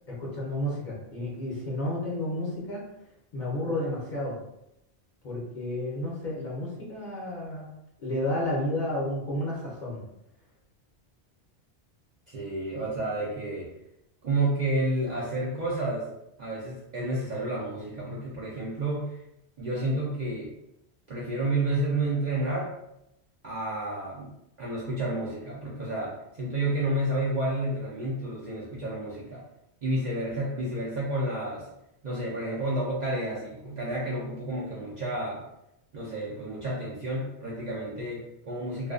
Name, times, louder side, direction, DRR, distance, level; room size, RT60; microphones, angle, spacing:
voice 1, 0.0-2.8 3.3-4.4 5.2-7.7 8.0-10.0, left 1 dB, 50° left, -5 dB, 0.7 m, -31 dB
voice 2, 12.3-13.7 14.2-16.1 16.4-19.2 19.6-20.5 21.1-22.7 23.4-29.4 29.8-31.7 32.0-35.4 35.9-38.9, right 1 dB, 50° right, -6 dB, 0.5 m, -30 dB
2.4 x 2.2 x 2.3 m, 0.84 s
omnidirectional pair, 1.2 m